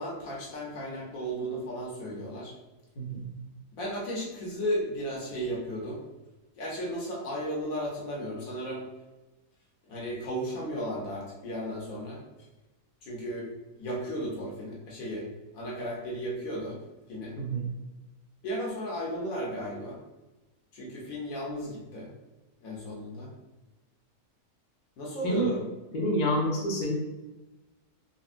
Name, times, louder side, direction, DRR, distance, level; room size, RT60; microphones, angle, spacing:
voice 1, 0.0-2.5 3.7-6.0 6.6-8.8 9.9-12.2 13.0-13.5 13.8-15.2 15.5-16.8 17.1-17.4 18.4-20.0 20.7-22.1 22.6-23.3 25.0-25.6, equal, 60° left, -3 dB, 1.1 m, -34 dB
voice 2, 25.2-25.6 25.9-26.9, equal, 45° left, -4 dB, 0.6 m, -28 dB
4.1 x 2.1 x 2.5 m, 1.1 s
omnidirectional pair, 1.8 m